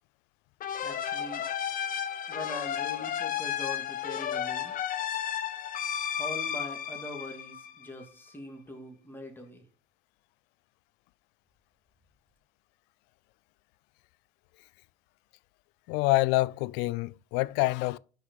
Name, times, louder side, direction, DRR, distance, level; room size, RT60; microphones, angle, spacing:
sound 1, 0.6-8.0, left 9 dB, 55° left, 0.9 m, -33 dB
voice 1, 0.8-1.5 2.3-4.8 6.2-9.7, left 1 dB, 10° left, 2.6 m, -42 dB
voice 2, 15.9-18.0, left 20 dB, 75° left, 0.4 m, -26 dB
6.3 x 5.6 x 4.8 m
hypercardioid pair, 65°, 18 cm